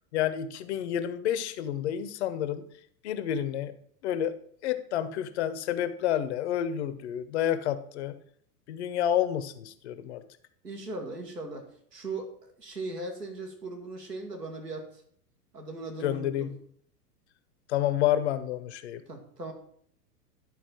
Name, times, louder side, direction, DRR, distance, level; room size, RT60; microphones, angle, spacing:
voice 1, 0.1-2.6 3.0-3.7 4.0-4.4 4.6-8.2 8.7-10.2 16.0-16.5 17.7-19.0, left 10 dB, 45° left, 12 dB, 0.7 m, -29 dB
voice 2, 10.6-11.7 11.9-14.9 15.5-16.5 19.1-19.5, right 2 dB, 85° right, 2 dB, 1.8 m, -38 dB
11.0 x 4.1 x 4.5 m, 0.62 s
figure-of-eight pair, 95°, 47 cm